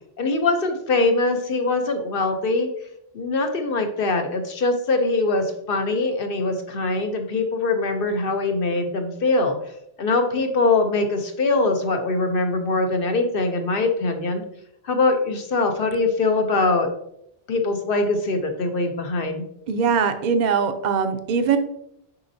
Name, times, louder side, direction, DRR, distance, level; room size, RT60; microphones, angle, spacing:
voice 1, 0.2-2.7 3.1-9.6 10.0-14.4 14.8-16.9 17.5-19.4, left 3 dB, 65° left, 5 dB, 1.0 m, -22 dB
voice 2, 19.7-21.6, right 6 dB, 55° right, 8 dB, 0.6 m, -21 dB
6.8 x 5.1 x 2.7 m, 0.74 s
omnidirectional pair, 1.0 m